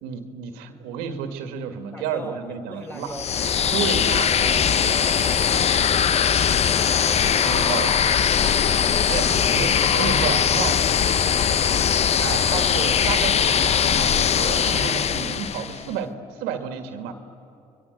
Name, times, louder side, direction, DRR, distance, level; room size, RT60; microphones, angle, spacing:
voice 1, 0.0-3.2 3.7-5.2 7.4-8.0 9.1-10.8 12.2-16.1 16.4-17.1, right 7 dB, 85° right, 7 dB, 2.0 m, -31 dB
voice 2, 1.9-3.5, equal, 10° left, 3 dB, 4.1 m, -41 dB
sound 1, 3.1-15.8, left 8 dB, 45° left, 0.8 m, -20 dB
30.0 x 22.0 x 8.1 m, 2.7 s
supercardioid pair, 85°, 16 cm